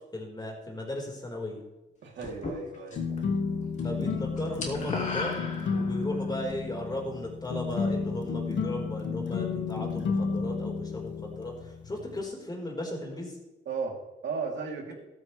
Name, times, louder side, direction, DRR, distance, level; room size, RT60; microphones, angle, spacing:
voice 1, 0.1-1.6 3.8-5.4 5.7-11.5 11.9-13.3, left 1 dB, 20° left, 0 dB, 4.2 m, -36 dB
voice 2, 2.0-3.0 13.6-14.9, right 5 dB, 65° right, 0 dB, 3.0 m, -35 dB
sound 1, 2.2-3.2 3.5-3.8 4.1-6.2, left 2 dB, 35° left, 3.0 m, -36 dB
sound 2, 2.9-12.2, left 5 dB, 65° left, 1.7 m, -32 dB
13.5 x 13.0 x 3.3 m, 1.0 s
cardioid pair, 90°, 20 cm